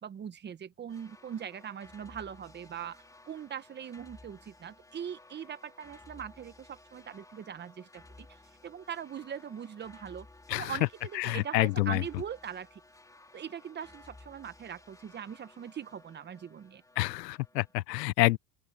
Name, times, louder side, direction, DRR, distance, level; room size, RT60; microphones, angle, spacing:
voice 1, 0.0-8.4 8.6-12.8 13.3-16.8, right 8 dB, 20° right, 1.1 m, -41 dB
sound 1, 0.9-17.7, left 2 dB, 5° left, 3.7 m, -56 dB
voice 2, 11.1-12.0 17.0-18.4, left 19 dB, 90° left, 0.7 m, -28 dB
open air
supercardioid pair, 125°, 47 cm